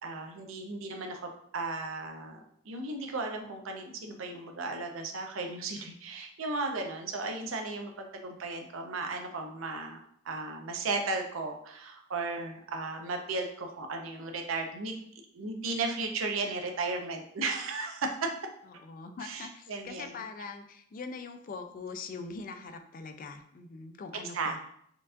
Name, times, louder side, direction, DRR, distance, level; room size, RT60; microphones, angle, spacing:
voice 1, 0.0-2.4 2.7-10.0 10.2-15.0 15.3-18.3 19.2-20.1 24.3-24.6, right 3 dB, 80° right, 4 dB, 0.6 m, -35 dB
voice 2, 18.7-24.6, left 4 dB, 45° left, 7 dB, 0.3 m, -42 dB
4.4 x 2.4 x 2.5 m, 0.68 s
head